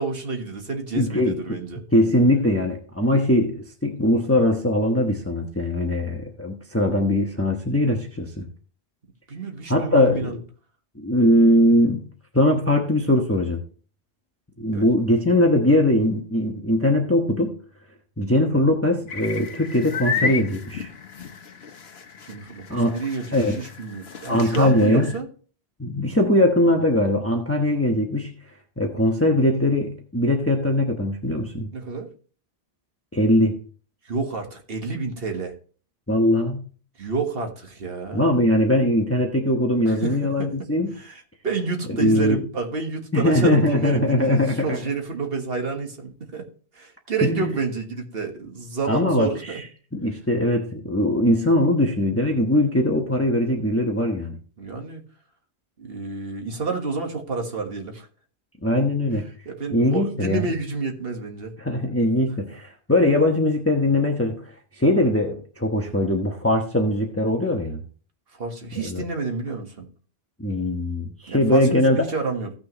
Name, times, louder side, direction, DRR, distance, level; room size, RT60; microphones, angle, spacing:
voice 1, 0.0-1.8 9.3-10.4 14.7-14.9 22.3-25.3 31.7-32.1 34.1-35.5 37.0-38.3 39.9-40.5 41.0-46.5 46.8-49.6 54.6-55.0 55.8-58.1 59.5-61.5 68.4-69.9 71.3-72.5, right 4 dB, 65° right, 3 dB, 1.8 m, -29 dB
voice 2, 0.9-1.6 1.9-8.5 9.7-10.4 11.0-12.0 12.3-13.6 14.6-17.6 18.2-20.9 22.7-22.9 23.3-23.6 24.3-25.1 25.8-28.3 28.8-31.7 33.1-33.6 36.1-36.6 38.1-40.9 42.0-42.4 43.1-44.8 47.2-47.5 48.9-49.6 49.9-54.4 58.6-59.2 59.7-60.5 61.6-64.5 64.8-67.8 68.9-69.0 70.4-72.0, left 1 dB, 15° left, 2 dB, 1.1 m, -21 dB
sound 1, 19.1-25.2, left 5 dB, 70° left, 1.2 m, -32 dB
16.0 x 6.2 x 3.1 m, 0.41 s
omnidirectional pair, 1.1 m